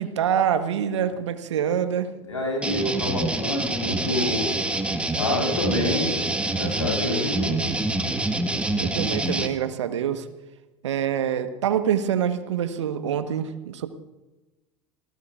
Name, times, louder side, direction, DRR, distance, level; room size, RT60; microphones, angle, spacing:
voice 1, 0.0-2.1 8.8-10.3 10.8-13.9, right 9 dB, 70° right, 10 dB, 1.4 m, -25 dB
voice 2, 2.3-4.5 5.1-6.1 6.5-7.5, left 2 dB, 80° left, 0 dB, 7.8 m, -27 dB
sound 1, 2.6-9.5, right 2 dB, 5° right, 1.6 m, -26 dB
29.5 x 19.0 x 2.5 m, 1.1 s
figure-of-eight pair, 80°, 16 cm